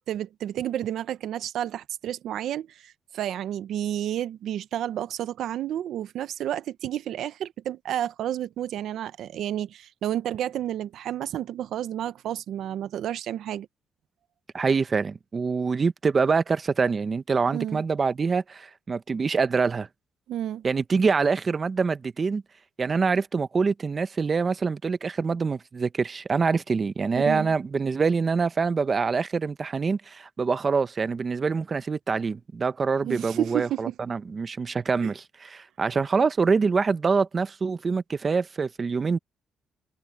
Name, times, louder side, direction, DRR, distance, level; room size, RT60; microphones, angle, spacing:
voice 1, 0.1-13.7 17.5-17.8 20.3-20.6 27.2-27.5 33.0-33.9 35.0-35.1, right 11 dB, 75° right, 0.7 m, -31 dB
voice 2, 14.5-19.9 20.6-22.4 22.8-39.2, right 5 dB, 35° right, 0.9 m, -25 dB
cardioid pair, 90°, 0 cm